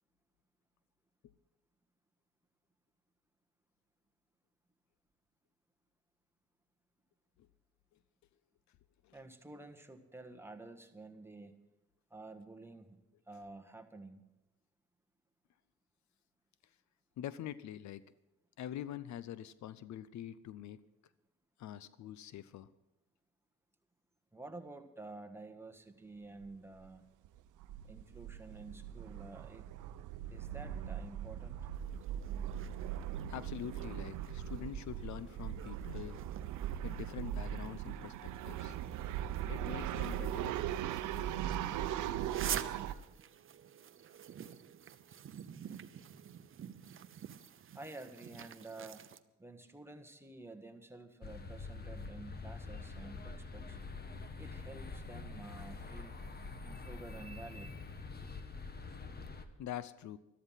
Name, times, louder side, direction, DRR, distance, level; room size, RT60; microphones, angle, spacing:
voice 1, 9.1-11.6 12.1-13.0 13.3-14.2 24.3-27.0 27.8-29.7 30.3-31.7 47.7-49.1 49.4-53.8 54.4-56.2 56.6-57.7, right 2 dB, 10° right, 6 dB, 1.5 m, -51 dB
voice 2, 17.2-18.0 18.6-20.8 21.6-22.7 33.3-36.2 36.8-38.8 39.5-41.6 59.6-60.2, left 11 dB, 70° left, 16 dB, 0.6 m, -45 dB
sound 1, 26.4-26.6 26.8-26.9 27.3-42.9, right 10 dB, 85° right, 0.7 m, -39 dB
sound 2, 31.7-49.2, right 9 dB, 45° right, 0.7 m, -49 dB
sound 3, 51.2-59.4, left 3 dB, 30° left, 1.4 m, -45 dB
13.5 x 13.0 x 5.7 m, 0.95 s
cardioid pair, 90°, 30 cm